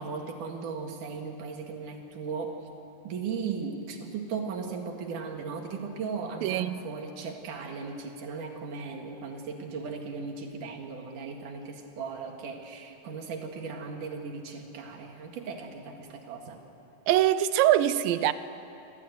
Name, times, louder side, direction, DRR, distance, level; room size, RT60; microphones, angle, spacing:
voice 1, 0.0-2.6 3.0-16.6, right 5 dB, 65° right, 3.3 m, -37 dB
voice 2, 6.4-6.9 17.1-18.3, right 12 dB, 85° right, 2.4 m, -23 dB
25.5 x 15.0 x 9.3 m
omnidirectional pair, 4.0 m